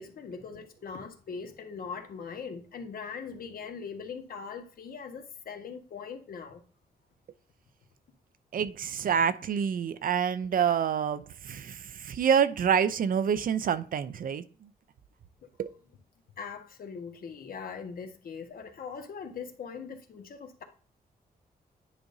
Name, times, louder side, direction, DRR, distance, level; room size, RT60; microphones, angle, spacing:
voice 1, 0.0-6.6 16.4-20.6, left 5 dB, 65° left, 1.3 m, -41 dB
voice 2, 8.5-14.4 15.6-15.7, right 7 dB, 60° right, 0.6 m, -27 dB
10.0 x 5.1 x 2.7 m
wide cardioid pair, 140°, 16 cm